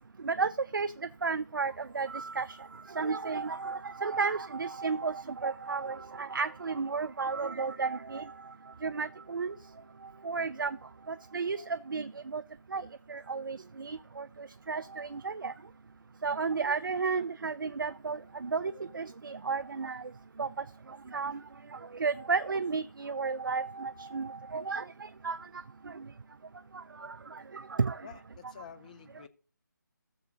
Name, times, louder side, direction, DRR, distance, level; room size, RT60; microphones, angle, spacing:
voice 1, 0.2-0.9 1.2-2.6 2.9-8.3 8.8-9.5 10.2-10.8 11.1-12.4 12.7-15.5 16.2-20.0 20.4-20.5 21.1-21.4 21.7-25.4 25.9-26.0 26.7-28.0, right 4 dB, 75° right, 0.4 m, -33 dB
voice 2, 28.0-29.3, left 8 dB, 20° left, 0.5 m, -49 dB
17.0 x 7.0 x 2.7 m
figure-of-eight pair, 155°, 11 cm